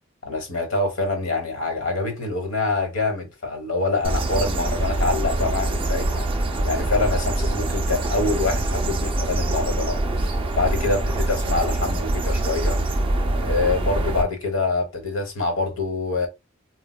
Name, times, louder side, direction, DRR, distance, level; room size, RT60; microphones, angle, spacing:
voice 1, 0.2-6.3 6.6-10.0 10.5-12.8 13.4-16.3, left 3 dB, 70° left, 1.1 m, -25 dB
sound 1, 4.0-14.2, right 2 dB, 25° right, 0.5 m, -24 dB
4.3 x 2.2 x 2.2 m
head